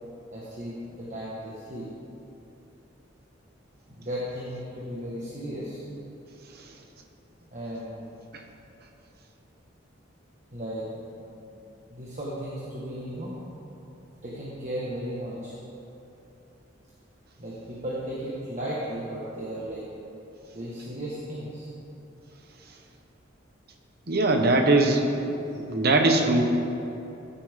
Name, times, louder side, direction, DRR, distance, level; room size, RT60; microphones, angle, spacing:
voice 1, 0.3-1.8 3.9-5.8 7.5-8.1 10.5-11.2 11.5-13.4 14.2-15.5 17.4-19.8 20.5-21.7, equal, 40° right, -6 dB, 1.6 m, -35 dB
voice 2, 24.1-26.4, right 2 dB, 55° right, 4 dB, 1.1 m, -21 dB
16.0 x 8.5 x 3.7 m, 2.9 s
head